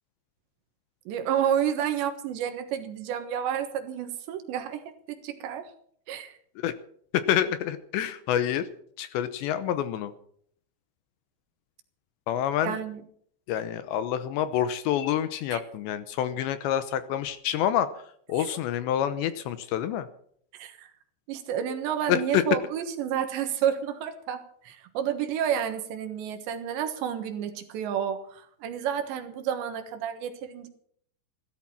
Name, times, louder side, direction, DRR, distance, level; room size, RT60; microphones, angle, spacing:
voice 1, 1.1-4.8 5.1-5.7 6.1-6.4 12.6-13.0 15.5-15.6 20.5-20.9 21.3-30.7, right 9 dB, 70° right, 8 dB, 3.4 m, -30 dB
voice 2, 7.1-8.7 9.0-10.1 12.3-12.8 13.5-20.1 22.1-22.4, left 10 dB, 80° left, 12 dB, 2.9 m, -27 dB
16.5 x 13.5 x 5.8 m, 0.62 s
omnidirectional pair, 5.6 m